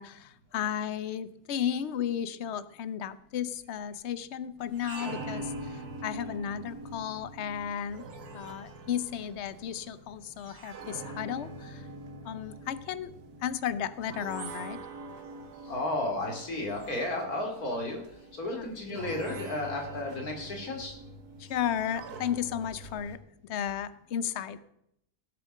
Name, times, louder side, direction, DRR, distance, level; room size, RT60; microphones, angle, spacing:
voice 1, 0.0-8.1 8.3-11.9 12.2-13.1 13.4-14.8 18.6-18.7 21.4-24.6, left 9 dB, 55° left, 14 dB, 0.9 m, -34 dB
sound 1, 4.6-23.2, right 2 dB, 90° right, 1.7 m, -44 dB
voice 2, 15.7-18.0 18.4-20.9, left 2 dB, 75° left, 1 dB, 3.0 m, -33 dB
17.0 x 6.9 x 6.6 m, 0.77 s
omnidirectional pair, 1.6 m